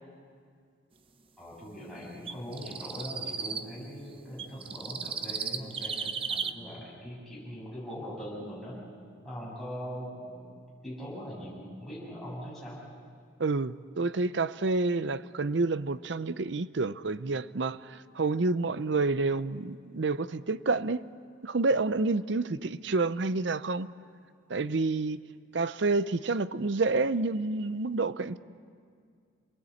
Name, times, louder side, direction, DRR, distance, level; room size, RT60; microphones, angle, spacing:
voice 1, 1.4-8.8 9.2-10.5 10.8-12.8, equal, ahead, 7.9 m, -41 dB
sound 1, 2.3-3.6 4.4-6.5, right 6 dB, 30° right, 0.8 m, -35 dB
voice 2, 13.4-21.0 21.4-23.9 24.5-25.2 25.5-28.4, right 3 dB, 65° right, 0.6 m, -29 dB
27.5 x 20.0 x 8.5 m
head